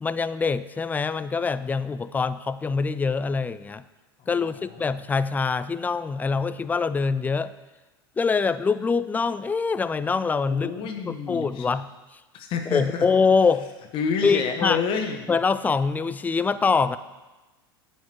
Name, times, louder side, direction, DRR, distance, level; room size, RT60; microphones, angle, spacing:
voice 1, 0.0-3.8 4.3-7.5 8.2-10.7 11.1-11.9 12.7-13.7 14.2-14.8 15.3-17.0, left 5 dB, 15° left, 15 dB, 0.4 m, -24 dB
voice 2, 4.2-4.8 10.5-11.7 12.3-13.1 13.9-15.2, left 6 dB, 45° left, 5 dB, 1.3 m, -29 dB
9.3 x 9.1 x 4.7 m, 1.1 s
hypercardioid pair, 90°, 13 cm